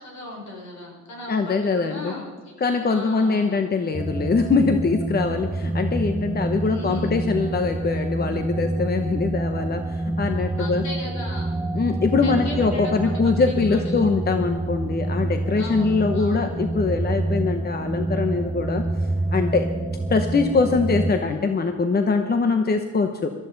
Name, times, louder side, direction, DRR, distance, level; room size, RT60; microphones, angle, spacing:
voice 1, 0.0-3.6 6.6-7.1 10.6-11.5 12.2-13.2 13.4-14.0 15.6-16.5, left 2 dB, 65° left, -1 dB, 5.1 m, -37 dB
voice 2, 1.3-2.1 2.6-10.8 11.7-18.8 19.3-19.7 20.1-23.3, left 4 dB, 30° left, 7 dB, 1.0 m, -23 dB
sound 1, 3.9-21.1, right 2 dB, 5° right, 1.0 m, -27 dB
18.5 x 13.5 x 4.0 m, 1.5 s
cardioid pair, 90°, 30 cm